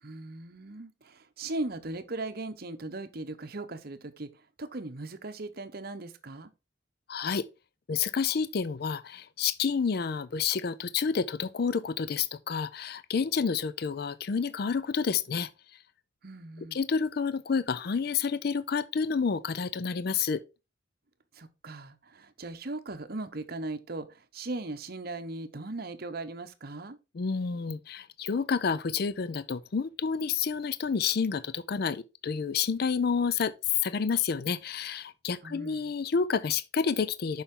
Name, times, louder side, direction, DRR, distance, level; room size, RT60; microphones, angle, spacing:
voice 1, 0.0-6.5 16.2-16.8 21.3-27.0 35.4-35.9, right 2 dB, 50° right, 0.9 m, -38 dB
voice 2, 7.1-7.4 7.9-15.5 16.7-20.4 27.1-37.4, left 6 dB, 50° left, 0.4 m, -29 dB
7.1 x 5.6 x 3.7 m
head